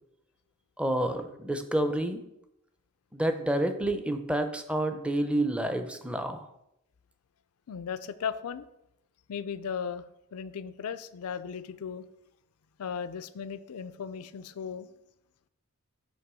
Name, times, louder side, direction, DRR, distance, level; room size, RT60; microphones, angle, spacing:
voice 1, 0.8-2.2 3.1-6.5, right 1 dB, 5° right, 7 dB, 0.5 m, -29 dB
voice 2, 7.7-8.7 9.3-10.0 10.3-12.0 12.8-14.9, left 7 dB, 85° left, 14 dB, 0.4 m, -36 dB
7.8 x 2.9 x 6.1 m, 0.82 s
head